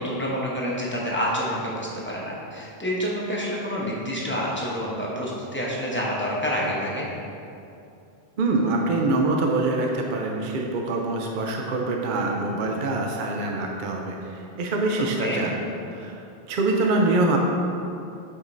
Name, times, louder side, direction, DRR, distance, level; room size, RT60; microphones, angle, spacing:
voice 1, 0.0-7.1 15.2-15.5, equal, 10° left, -5 dB, 0.9 m, -28 dB
voice 2, 8.4-15.5 15.9-16.2 16.5-17.4, right 2 dB, 55° right, 1 dB, 0.7 m, -24 dB
8.4 x 5.1 x 2.6 m, 2.7 s
omnidirectional pair, 1.1 m